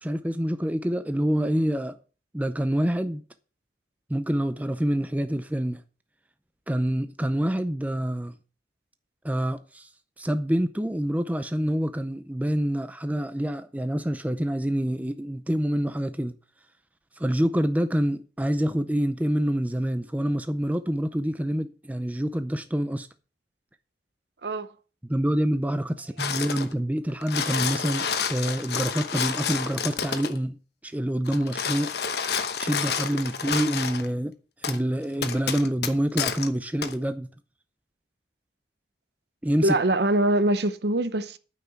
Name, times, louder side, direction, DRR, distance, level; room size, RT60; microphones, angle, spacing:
voice 1, 0.0-2.0 2.3-3.2 4.1-5.8 6.7-8.3 9.2-9.9 10.2-16.3 17.2-23.1 25.0-30.6 30.8-31.9 32.6-34.4 34.6-37.3 39.4-39.8, equal, 10° right, 0.5 m, -26 dB
sound 1, 26.2-26.7 27.1-30.4 31.2-34.1 34.6-34.8 35.2-36.5 36.8-36.9, left 6 dB, 60° left, 1.0 m, -29 dB
voice 2, 39.6-41.4, right 1 dB, 65° right, 0.8 m, -23 dB
9.5 x 5.7 x 7.9 m
head